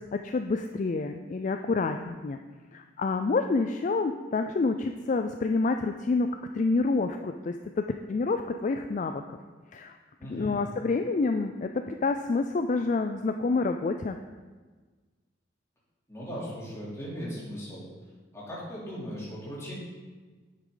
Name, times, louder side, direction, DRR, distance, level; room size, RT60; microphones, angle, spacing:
voice 1, 0.1-2.4 2.7-6.3 6.5-9.4 9.7-9.9 10.2-14.2, left 3 dB, 40° left, 6 dB, 0.3 m, -28 dB
voice 2, 10.2-10.6 16.1-17.9 18.3-19.7, equal, 15° left, -7 dB, 3.1 m, -38 dB
9.4 x 8.3 x 3.9 m, 1.4 s
head